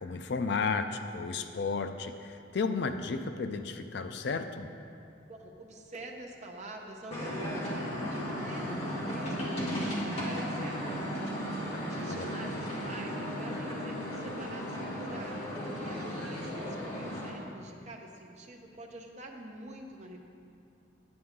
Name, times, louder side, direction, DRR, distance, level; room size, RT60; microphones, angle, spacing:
voice 1, 0.0-4.7 11.7-12.3, left 4 dB, 55° left, 8 dB, 0.4 m, -33 dB
voice 2, 5.3-7.7 8.1-11.3 11.6-20.2, right 1 dB, 35° right, 1 dB, 0.8 m, -46 dB
sound 1, 7.1-17.3, equal, 30° left, 1.8 m, -35 dB
9.5 x 9.3 x 3.6 m, 2.5 s
head